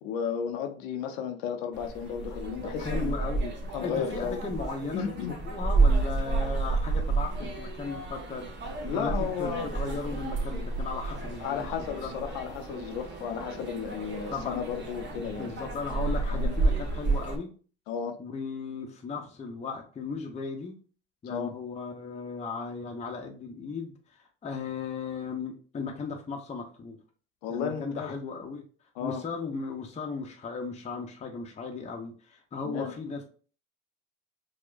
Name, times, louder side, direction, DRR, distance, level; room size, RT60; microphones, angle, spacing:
voice 1, 0.0-3.1 3.7-4.4 4.9-5.4 8.8-9.7 11.4-15.5 16.3-16.5 17.9-18.2 21.3-21.5 27.4-28.1 29.0-29.2 32.6-32.9, left 7 dB, 85° left, 0.5 m, -33 dB
sound 1, 1.7-17.4, right 3 dB, 35° right, 1.0 m, -30 dB
voice 2, 2.6-3.5 3.8-5.1 5.4-8.5 8.9-11.7 12.0-12.1 14.3-14.6 15.2-17.5 18.2-20.7 21.2-27.0 27.5-28.6 29.0-33.2, left 4 dB, 25° left, 0.6 m, -36 dB
4.4 x 2.1 x 2.4 m
hypercardioid pair, 70°, 30 cm